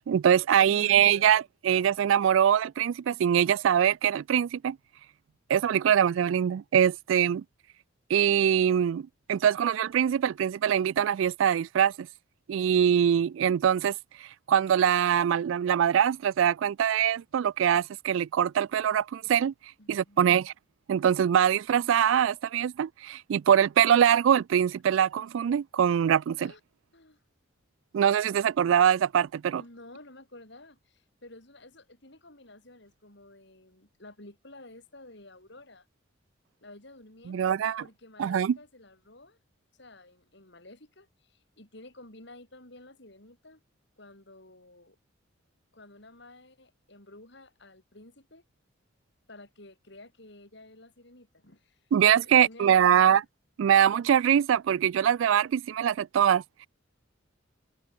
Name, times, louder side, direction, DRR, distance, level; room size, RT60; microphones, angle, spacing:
voice 1, 0.0-4.8 5.5-7.4 8.1-12.1 12.5-13.9 14.5-19.5 19.9-20.5 20.9-26.5 27.9-29.6 37.3-37.8 38.2-38.6 51.9-53.2 53.6-56.7, right 9 dB, 75° right, 0.3 m, -23 dB
voice 2, 0.6-1.4 19.8-20.4 26.4-26.6 26.9-27.2 29.6-35.9 36.6-39.4 39.8-43.6 44.0-45.0 45.7-48.4 49.3-51.8 52.2-53.2, left 2 dB, 60° left, 5.6 m, -51 dB
head